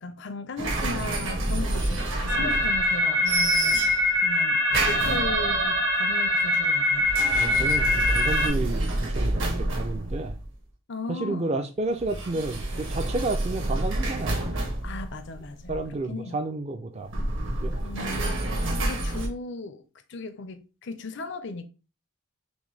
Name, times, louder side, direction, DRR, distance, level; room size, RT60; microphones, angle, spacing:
voice 1, 0.0-3.9 4.2-7.1 10.9-11.5 14.8-15.8 16.1-16.4 17.8-19.8 20.1-21.6, left 3 dB, 55° left, 0.5 m, -36 dB
sound 1, 0.6-3.0 3.2-4.2 4.7-5.6 6.9-10.5 12.0-16.0 17.0-19.3, right 2 dB, 60° right, 1.1 m, -29 dB
sound 2, 2.3-8.5, left 1 dB, 85° right, 2.6 m, -23 dB
voice 2, 7.4-10.4 11.1-14.4 15.7-17.1 17.6-17.7 18.6-18.8, right 2 dB, 30° right, 0.4 m, -31 dB
6.1 x 2.2 x 3.2 m
head